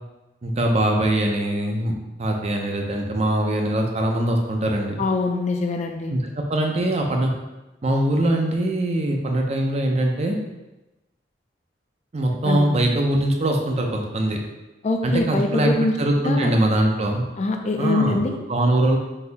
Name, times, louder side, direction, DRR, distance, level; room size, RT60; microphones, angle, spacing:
voice 1, 0.4-5.0 6.1-7.3 7.8-10.4 12.1-14.4 15.0-17.3 17.8-18.2 18.5-19.0, right 1 dB, 35° right, 2 dB, 0.5 m, -22 dB
voice 2, 5.0-6.1 12.4-12.7 14.8-16.0 16.2-16.5 17.4-18.4, left 3 dB, 40° left, 4 dB, 0.4 m, -23 dB
4.0 x 2.7 x 3.9 m, 1.0 s
head